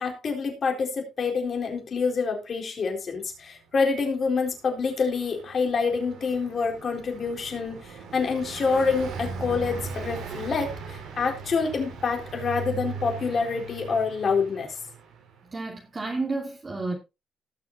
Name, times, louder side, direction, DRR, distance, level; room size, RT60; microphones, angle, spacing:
voice 1, 0.0-14.7, left 5 dB, 50° left, 3.9 m, -27 dB
Car passing by, 4.3-15.3, right 5 dB, 85° right, 3.7 m, -39 dB
voice 2, 15.4-16.9, right 3 dB, 30° right, 2.7 m, -31 dB
18.5 x 6.7 x 2.6 m
cardioid pair, 90°, 0 cm